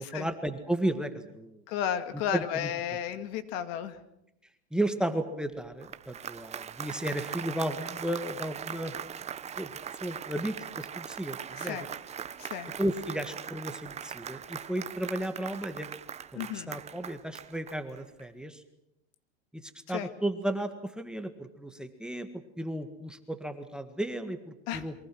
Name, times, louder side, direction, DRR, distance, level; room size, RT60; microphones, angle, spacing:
voice 1, 0.0-1.6 2.3-2.7 4.7-8.9 9.6-9.7 10.0-11.8 12.8-15.9 16.3-18.6 19.5-24.9, right 1 dB, ahead, 7 dB, 1.8 m, -34 dB
voice 2, 1.7-4.0 11.6-11.9 12.4-12.7 16.3-16.7 19.9-20.1 24.7-24.8, left 9 dB, 55° left, 10 dB, 2.2 m, -33 dB
Applause, 5.6-18.2, right 8 dB, 20° right, 0.9 m, -40 dB
28.0 x 23.5 x 6.3 m, 0.81 s
supercardioid pair, 130°, 34 cm